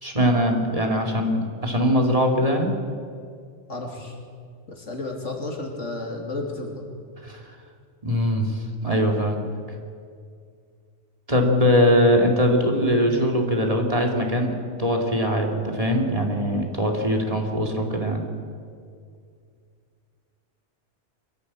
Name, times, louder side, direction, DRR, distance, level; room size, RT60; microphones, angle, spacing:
voice 1, 0.0-2.7 7.2-7.4 8.0-9.5 11.3-14.5 14.8-18.2, equal, 30° right, 1 dB, 2.6 m, -21 dB
voice 2, 3.7-4.1 4.7-6.9, left 2 dB, 80° left, 1 dB, 3.4 m, -32 dB
24.5 x 14.0 x 8.6 m, 2.2 s
omnidirectional pair, 1.2 m